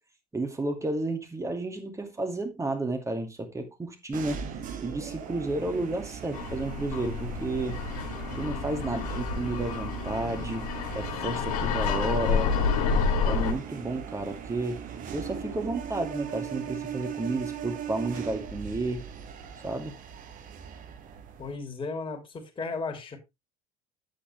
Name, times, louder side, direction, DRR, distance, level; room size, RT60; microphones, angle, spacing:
voice 1, 0.3-4.4 4.8-7.8 8.4-10.7 10.9-12.5 13.2-14.8 15.1-19.0 19.6-20.0, right 2 dB, 15° right, 2.5 m, -32 dB
sound 1, 4.1-21.5, right 8 dB, 45° right, 1.5 m, -39 dB
sound 2, 6.3-13.5, left 5 dB, 65° left, 2.2 m, -29 dB
voice 2, 21.4-23.2, left 4 dB, 25° left, 3.0 m, -35 dB
8.8 x 8.4 x 3.2 m
figure-of-eight pair, 60°, 19 cm